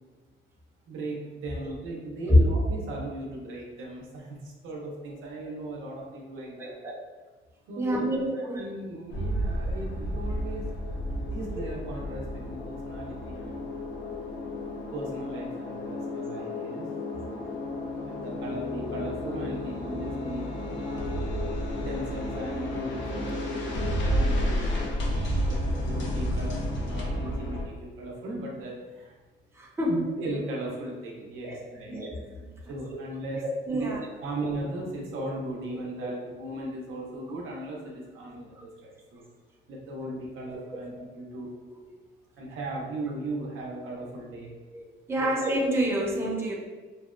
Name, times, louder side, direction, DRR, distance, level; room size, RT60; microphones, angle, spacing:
voice 1, 0.9-6.8 7.7-10.7 11.3-13.9 14.9-17.4 18.0-20.4 20.9-21.3 21.7-29.1 29.9-31.9 32.7-33.4 33.7-33.9 34.2-39.3 39.7-41.5 42.4-44.5 45.2-45.3, right 1 dB, 80° right, -2 dB, 0.6 m, -38 dB
voice 2, 6.6-6.9 7.8-8.6 29.6-30.1 31.4-31.6 31.9-32.1 33.3-34.0 36.0-36.2 44.7-44.8 45.1-46.5, equal, 10° right, -3 dB, 0.5 m, -26 dB
sound 1, 9.1-27.6, left 1 dB, 70° left, 0.6 m, -31 dB
2.7 x 2.1 x 2.4 m, 1.3 s
cardioid pair, 90°, 20 cm